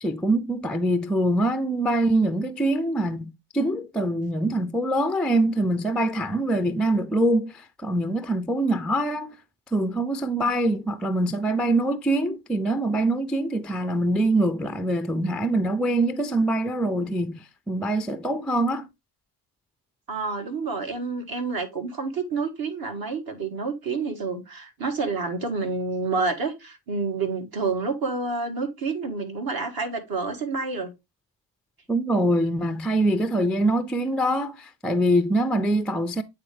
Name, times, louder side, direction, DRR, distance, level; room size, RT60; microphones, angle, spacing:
voice 1, 0.0-9.4 9.7-18.9 31.9-36.2, right 1 dB, ahead, 0.4 m, -24 dB
voice 2, 20.1-30.9, right 4 dB, 50° right, 1.7 m, -28 dB
8.7 x 3.6 x 3.2 m
supercardioid pair, 65°, 47 cm